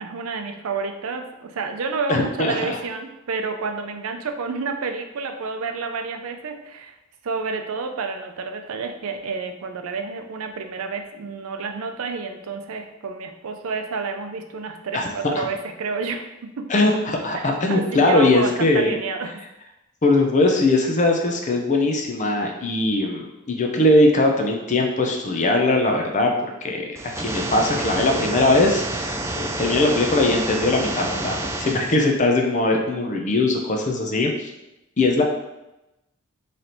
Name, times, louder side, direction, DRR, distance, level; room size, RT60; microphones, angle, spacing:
voice 1, 0.0-7.0 7.2-16.7 17.3-19.4, right 4 dB, 75° right, 5 dB, 0.5 m, -30 dB
voice 2, 2.1-2.8 14.9-15.1 15.4-15.5 16.7-19.0 20.0-26.9 27.2-34.5 35.0-35.2, left 2 dB, 35° left, 2 dB, 0.6 m, -20 dB
sound 1, 26.9-31.9, right 1 dB, 15° right, 0.3 m, -29 dB
3.2 x 2.8 x 4.1 m, 0.94 s
head